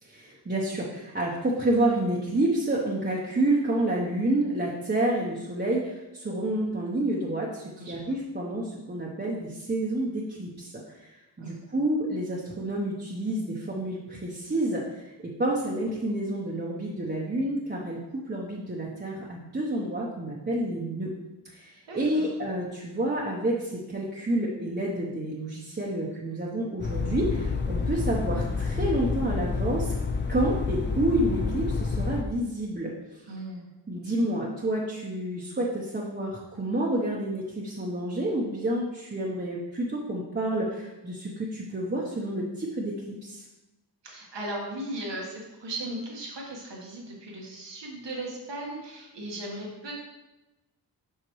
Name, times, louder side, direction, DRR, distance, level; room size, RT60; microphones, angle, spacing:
voice 1, 0.0-15.1 15.4-21.1 21.4-29.9 30.3-33.2 33.9-42.9 43.2-43.5, right 1 dB, 25° right, -4 dB, 0.8 m, -29 dB
voice 2, 7.8-8.2 11.4-11.6 21.9-22.3 33.3-33.7 44.0-49.9, right 1 dB, 85° right, -1 dB, 1.5 m, -37 dB
sound 1, 26.8-32.2, left 4 dB, 25° left, 0.5 m, -29 dB
7.9 x 5.8 x 3.0 m, 1.0 s
wide cardioid pair, 130°, 42 cm